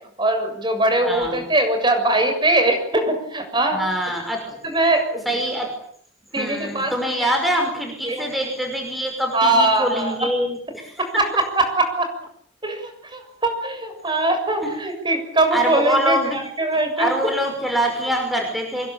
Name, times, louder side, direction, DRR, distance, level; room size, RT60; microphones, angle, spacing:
voice 1, 0.2-3.8 4.6-5.3 6.3-7.0 8.0-8.3 9.3-10.1 11.0-12.1 12.6-16.2 16.6-17.1, right 2 dB, 25° right, 6 dB, 7.2 m, -21 dB
voice 2, 1.0-1.4 3.7-4.4 5.3-5.7 6.4-11.1 14.6-14.7 15.5-16.4 17.0-18.9, equal, ahead, 2 dB, 5.6 m, -24 dB
26.0 x 22.0 x 9.1 m, 0.64 s
head